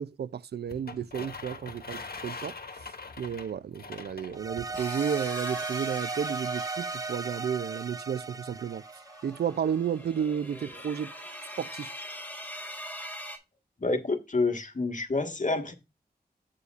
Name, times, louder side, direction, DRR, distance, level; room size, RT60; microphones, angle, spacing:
voice 1, 0.0-2.6 3.2-8.8 9.2-11.1 11.6-11.9, right 8 dB, 85° right, 0.4 m, -32 dB
sound 1, 0.7-4.8, left 4 dB, 70° left, 1.4 m, -42 dB
sound 2, 4.3-9.7, right 4 dB, 20° right, 0.4 m, -36 dB
sound 3, 4.7-13.4, equal, 10° left, 3.0 m, -43 dB
voice 2, 13.8-15.7, left 3 dB, 50° left, 1.5 m, -28 dB
9.6 x 8.4 x 2.4 m
cardioid pair, 50°, 16 cm